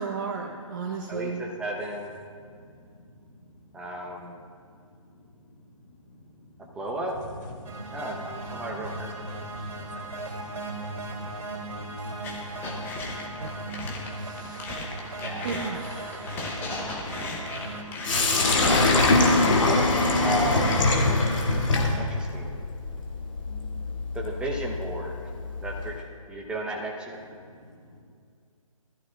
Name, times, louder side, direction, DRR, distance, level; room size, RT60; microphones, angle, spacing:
voice 1, 0.0-1.4 13.4-13.6 13.8-14.6 15.4-16.6, right 5 dB, 40° right, 2 dB, 0.8 m, -35 dB
voice 2, 1.1-2.1 3.7-4.4 6.6-7.2 7.9-9.3 15.2-15.8 16.3-16.5 20.2-20.7 22.0-22.6 24.1-25.3 25.6-26.0 26.3-27.3, right 1 dB, 5° right, -1 dB, 0.9 m, -34 dB
voice 3, 2.3-4.3 4.7-6.8 7.6-13.4 27.4-28.0, left 1 dB, 30° left, -3 dB, 3.0 m, -49 dB
sound 1, 7.7-17.8, right 2 dB, 75° right, 2.9 m, -37 dB
sound 2, 12.2-18.9, left 3 dB, 10° left, 1.1 m, -37 dB
Sink (filling or washing), 18.0-26.0, left 2 dB, 60° left, 2.5 m, -23 dB
20.0 x 14.0 x 2.4 m, 2.3 s
figure-of-eight pair, 145°, 18 cm